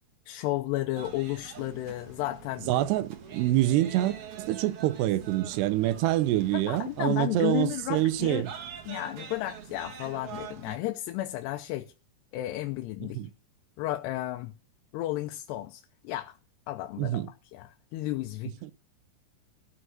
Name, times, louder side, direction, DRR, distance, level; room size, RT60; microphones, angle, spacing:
voice 1, 0.3-2.7 6.5-8.5 8.9-11.9 12.3-13.2 13.8-14.5 14.9-16.4 16.7-17.3 17.5-18.7, left 16 dB, 90° left, 2.9 m, -33 dB
sound 1, 0.9-10.8, right 7 dB, 55° right, 1.7 m, -45 dB
voice 2, 2.7-8.5 13.2-13.3 17.0-17.3 18.6-18.7, right 15 dB, 90° right, 2.9 m, -26 dB
14.0 x 6.2 x 7.9 m
omnidirectional pair, 4.7 m